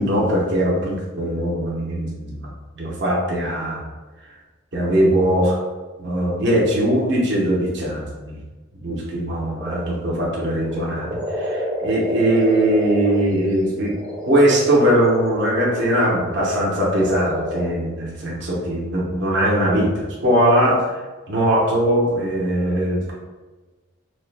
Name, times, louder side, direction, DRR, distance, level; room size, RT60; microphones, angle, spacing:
voice 1, 0.0-3.9 4.7-5.6 6.0-8.4 8.8-13.9 14.3-20.9 21.3-23.1, right 1 dB, 60° right, -5 dB, 0.8 m, -20 dB
sound 1, 9.6-10.2 10.4-13.2 13.8-17.7, equal, 20° right, 0.6 m, -28 dB
3.1 x 2.1 x 3.2 m, 1.2 s
head